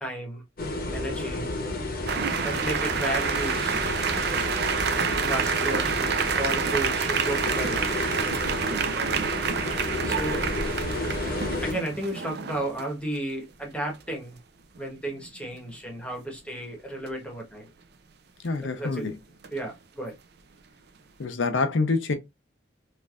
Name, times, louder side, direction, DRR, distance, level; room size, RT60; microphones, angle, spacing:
voice 1, 0.0-0.4 0.9-1.5 2.4-3.8 5.2-7.9 10.0-10.4 11.6-14.4 14.8-17.7 18.8-19.1 19.5-20.1, right 1 dB, 5° left, 1.0 m, -33 dB
sound 1, 0.6-11.7, left 1 dB, 50° left, 0.8 m, -31 dB
sound 2, 2.1-12.8 14.7-14.8 15.1-15.4 19.4-19.7, right 6 dB, 60° right, 0.4 m, -28 dB
voice 2, 18.4-19.1 21.2-22.2, left 3 dB, 85° left, 0.7 m, -26 dB
3.2 x 2.5 x 2.3 m
head